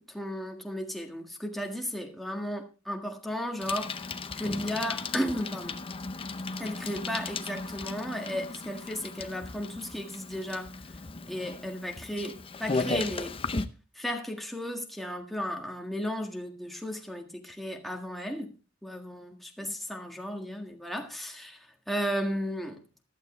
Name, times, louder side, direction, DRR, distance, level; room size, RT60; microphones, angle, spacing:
voice 1, 0.0-4.0 4.4-5.8 6.6-10.7 11.3-13.4 13.9-18.5 18.8-21.6 21.9-22.8, equal, ahead, 1.6 m, -34 dB
Bicycle, 3.6-13.7, left 3 dB, 25° left, 0.6 m, -36 dB
14.5 x 12.0 x 3.2 m
head